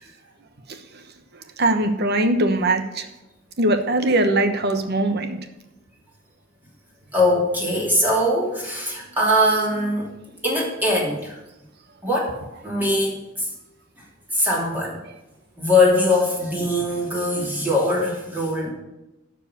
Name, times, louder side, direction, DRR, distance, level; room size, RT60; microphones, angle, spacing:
voice 1, 1.6-3.1 3.6-5.4, right 1 dB, 55° right, 7 dB, 1.0 m, -21 dB
voice 2, 7.1-10.1 10.4-11.4 12.0-12.3 12.6-13.5 14.3-15.0 15.6-18.7, left 1 dB, 10° right, -4 dB, 2.9 m, -21 dB
12.5 x 4.8 x 8.5 m, 0.96 s
head